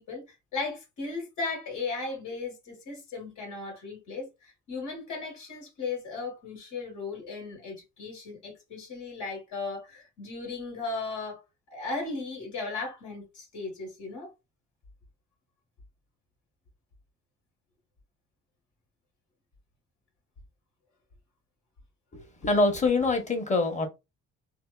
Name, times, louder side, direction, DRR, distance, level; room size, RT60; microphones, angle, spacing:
voice 1, 0.0-11.4 11.7-14.3, left 3 dB, 75° left, 1.3 m, -36 dB
voice 2, 22.1-23.9, left 3 dB, 25° left, 0.8 m, -25 dB
2.7 x 2.1 x 2.2 m
cardioid pair, 90°, 30 cm